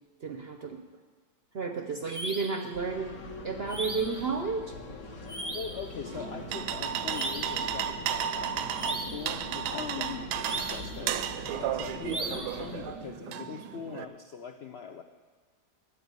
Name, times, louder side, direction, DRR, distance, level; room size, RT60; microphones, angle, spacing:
voice 1, 0.2-0.8 1.5-3.1 3.4-4.7, right 4 dB, 55° right, 5 dB, 0.7 m, -32 dB
sound 1, 2.1-2.6 3.7-4.2 5.3-5.8 7.1-7.7 8.7-9.3 10.4-11.0 12.1-12.6, right 2 dB, 20° right, 0.7 m, -37 dB
sound 2, 2.7-13.1, left 2 dB, 55° left, 1.7 m, -43 dB
voice 2, 5.3-11.3 11.5-15.0, left 6 dB, 75° left, 6 dB, 0.5 m, -41 dB
sound 3, 6.1-14.0, right 9 dB, 75° right, 1.2 m, -34 dB
9.8 x 8.1 x 9.6 m, 1.4 s
omnidirectional pair, 1.9 m